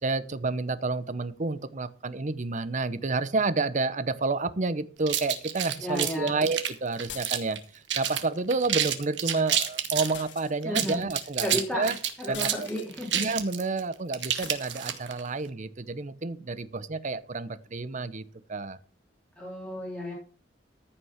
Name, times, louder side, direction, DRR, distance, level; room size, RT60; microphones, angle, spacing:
voice 1, 0.0-12.0 12.3-12.7 13.1-18.8, right 3 dB, 45° right, 14 dB, 0.8 m, -30 dB
sound 1, 5.1-7.6 7.9-8.2 8.5-10.1 10.6-15.2, right 10 dB, 75° right, 1.5 m, -29 dB
voice 2, 5.8-6.5 10.6-11.0 11.4-11.9 12.2-13.2 19.4-20.1, equal, 5° left, -4 dB, 3.3 m, -33 dB
sound 2, 7.1-7.8 10.1-10.9 12.3-12.9 14.4-14.7, left 9 dB, 80° left, 1.6 m, -45 dB
14.5 x 6.0 x 5.8 m, 0.41 s
head